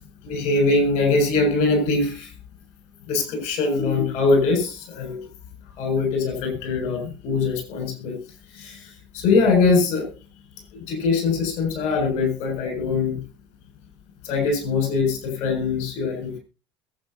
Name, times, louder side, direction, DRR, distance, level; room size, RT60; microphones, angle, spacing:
voice 1, 0.2-2.3 3.1-5.2 5.8-8.2 8.5-10.1 10.9-13.2 14.2-16.4, left 3 dB, 70° left, 5 dB, 7.1 m, -22 dB
22.0 x 9.0 x 2.9 m, 0.31 s
hypercardioid pair, 80°, 12 cm